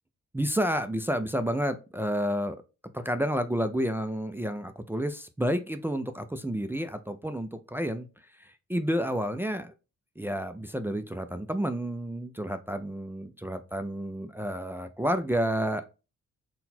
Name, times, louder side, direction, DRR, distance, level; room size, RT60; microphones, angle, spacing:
voice 1, 0.3-2.6 2.9-8.1 8.4-9.7 10.2-15.8, equal, 10° right, 8 dB, 0.3 m, -30 dB
3.9 x 2.2 x 4.1 m, 0.30 s
cardioid pair, 90°, 30 cm